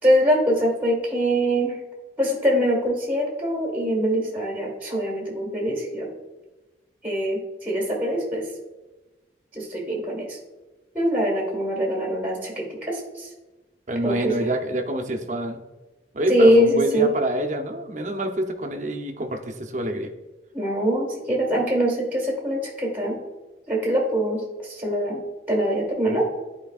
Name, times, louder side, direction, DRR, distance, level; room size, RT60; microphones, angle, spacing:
voice 1, 0.0-1.8 2.2-6.1 7.0-8.5 9.5-10.4 10.9-13.3 14.0-14.3 16.3-17.1 20.5-23.2 23.7-25.2 25.5-26.3, equal, 10° right, -3 dB, 1.6 m, -23 dB
voice 2, 13.9-15.6 16.1-20.1, right 1 dB, 45° right, 4 dB, 0.7 m, -27 dB
12.0 x 4.5 x 2.4 m, 1.1 s
head